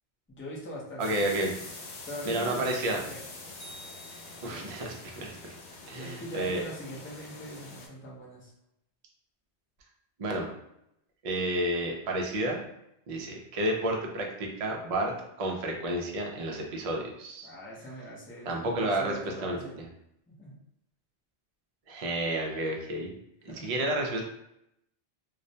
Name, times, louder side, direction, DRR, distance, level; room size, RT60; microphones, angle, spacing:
voice 1, 0.3-1.4 2.1-3.3 4.5-4.7 6.0-8.5 17.4-19.8 20.3-20.6 23.5-23.8, equal, 20° left, -5 dB, 0.3 m, -42 dB
sound 1, 1.0-7.9, left 3 dB, 90° left, 0.9 m, -45 dB
voice 2, 1.0-1.5 2.2-3.0 4.4-5.5 5.9-6.6 10.2-10.5 11.2-12.7 13.1-15.1 15.4-17.5 18.5-19.1 19.4-19.6 21.9-23.1 23.4-24.2, right 1 dB, 60° right, 1 dB, 0.3 m, -31 dB
sound 2, 3.6-5.0, right 1 dB, 70° left, 1.1 m, -51 dB
2.4 x 2.1 x 2.6 m, 0.79 s
omnidirectional pair, 1.1 m